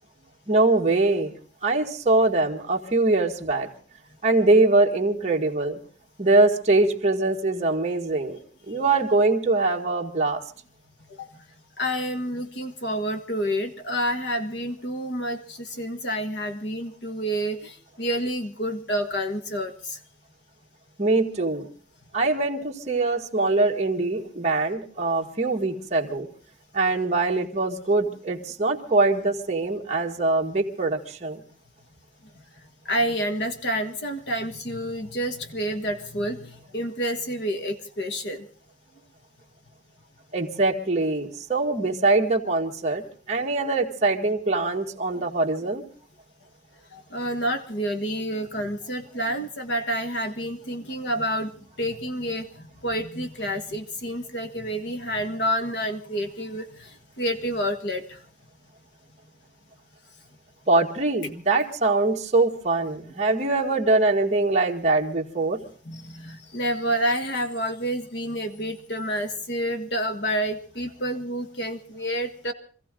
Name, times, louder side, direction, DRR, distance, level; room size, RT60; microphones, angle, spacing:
voice 1, 0.5-1.3 1.6-3.7 4.2-5.8 6.2-8.4 8.7-10.4 21.0-21.7 22.1-26.3 26.7-31.4 40.3-45.8 60.7-65.6, right 2 dB, 35° right, 0 dB, 1.8 m, -23 dB
voice 2, 11.8-20.0 32.8-38.5 45.1-45.3 46.9-51.5 51.8-58.2 65.8-72.5, equal, 65° left, 7 dB, 1.7 m, -29 dB
25.5 x 15.0 x 3.8 m, 0.41 s
head